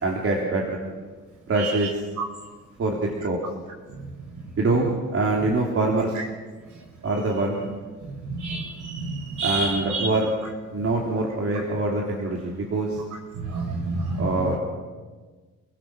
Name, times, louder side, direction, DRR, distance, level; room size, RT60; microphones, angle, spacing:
voice 1, 0.0-0.8 1.5-2.0 2.8-3.4 4.6-6.2 7.0-7.7 9.4-10.3 10.7-13.0 14.2-14.6, right 2 dB, 50° right, -1 dB, 3.8 m, -24 dB
voice 2, 8.3-10.1 13.4-14.3, right 2 dB, 80° right, 3 dB, 5.0 m, -29 dB
29.5 x 16.5 x 6.2 m, 1.4 s
cardioid pair, 90°, 30 cm